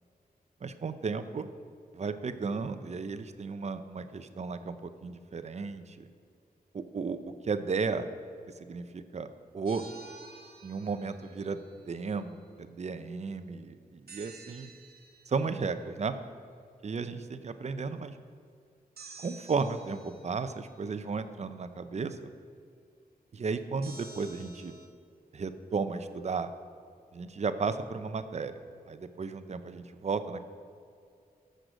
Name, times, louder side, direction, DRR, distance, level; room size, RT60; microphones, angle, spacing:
voice 1, 0.6-1.5 1.9-6.1 6.7-7.2 7.4-8.1 8.6-9.3 9.5-9.8 10.6-11.6 11.9-14.7 15.3-16.2 16.8-18.2 19.2-22.3 23.3-24.7 25.3-26.5 27.1-28.6 28.9-30.4, right 4 dB, 45° right, 10 dB, 0.6 m, -34 dB
sound 1, 9.7-11.8 14.1-15.6 19.0-20.7 23.8-24.9, right 4 dB, 75° right, 1.2 m, -51 dB
14.0 x 6.6 x 6.4 m, 2.4 s
wide cardioid pair, 145°, 16 cm